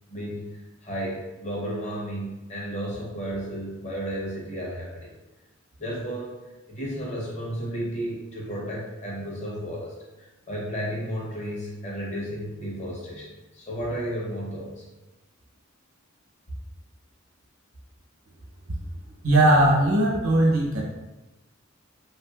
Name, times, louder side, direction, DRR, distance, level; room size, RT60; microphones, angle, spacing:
voice 1, 0.1-0.4 0.8-5.1 5.8-6.3 6.7-14.8, equal, 35° left, -4 dB, 0.8 m, -33 dB
voice 2, 19.2-20.8, right 1 dB, 90° right, -2 dB, 0.8 m, -19 dB
3.4 x 2.6 x 2.4 m, 1.0 s
head